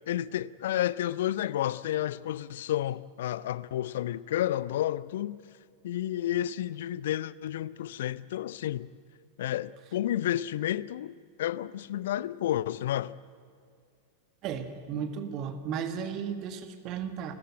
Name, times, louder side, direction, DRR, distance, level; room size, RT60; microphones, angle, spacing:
voice 1, 0.1-5.4 5.8-8.9 9.4-13.1, left 12 dB, 55° left, 0.5 m, -31 dB
voice 2, 14.4-17.4, right 7 dB, 40° right, 1.6 m, -35 dB
29.0 x 14.0 x 9.0 m
figure-of-eight pair, 90°, 0 cm